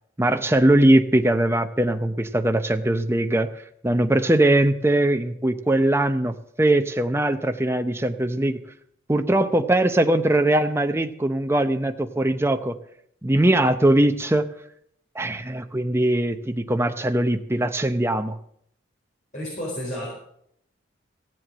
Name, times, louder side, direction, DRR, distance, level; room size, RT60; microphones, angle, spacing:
voice 1, 0.2-3.5 3.8-6.3 6.6-8.6 9.1-12.8 13.2-14.5 15.2-18.4, right 1 dB, 15° right, 8 dB, 0.6 m, -21 dB
voice 2, 19.3-20.1, equal, 40° left, -6 dB, 4.8 m, -31 dB
15.5 x 7.7 x 7.6 m, 0.70 s
head